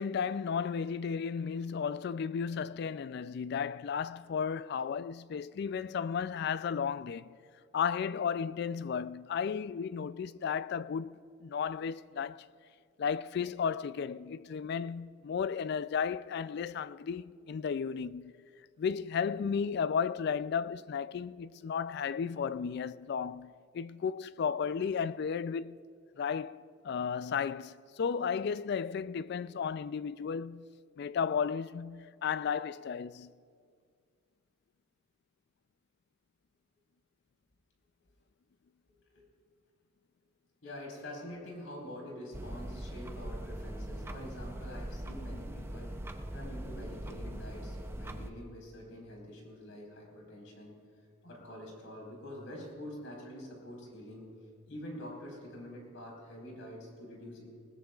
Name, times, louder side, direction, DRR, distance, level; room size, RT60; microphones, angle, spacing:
voice 1, 0.0-7.3 7.7-12.5 13.0-18.3 18.8-25.8 26.2-30.7 31.0-33.3, left 6 dB, 55° left, 0.3 m, -34 dB
voice 2, 40.6-46.0 46.3-50.7 51.2-54.3 54.7-57.5, left 1 dB, 75° left, 4.3 m, -46 dB
sound 1, 42.3-48.3, right 1 dB, 10° right, 0.5 m, -41 dB
20.0 x 19.5 x 2.4 m
head